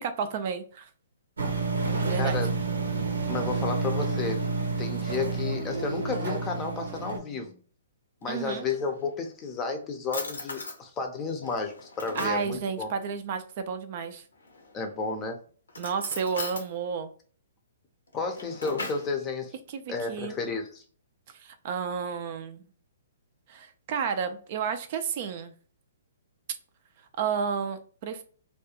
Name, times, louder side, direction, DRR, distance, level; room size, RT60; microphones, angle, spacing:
voice 1, 0.0-0.9 2.0-2.4 8.3-8.7 12.2-14.2 15.8-17.1 19.7-19.8 20.1-20.3 21.3-22.7 23.5-25.5 27.2-28.2, right 6 dB, 45° right, 9 dB, 0.4 m, -31 dB
sound 1, 1.4-7.2, right 3 dB, 85° right, 0.7 m, -29 dB
voice 2, 2.2-2.5 3.3-4.5 4.8-7.6 8.2-12.9 14.7-15.4 18.1-19.5 19.9-20.8, left 4 dB, 20° left, 4 dB, 0.5 m, -32 dB
Drawer open or close, 8.2-9.2 9.7-9.8 10.1-10.8 11.4-12.5 14.4-14.9 15.7-16.7 18.1-19.1, left 3 dB, 85° left, 0.7 m, -38 dB
2.4 x 2.2 x 2.8 m, 0.43 s
hypercardioid pair, 135°, 0 cm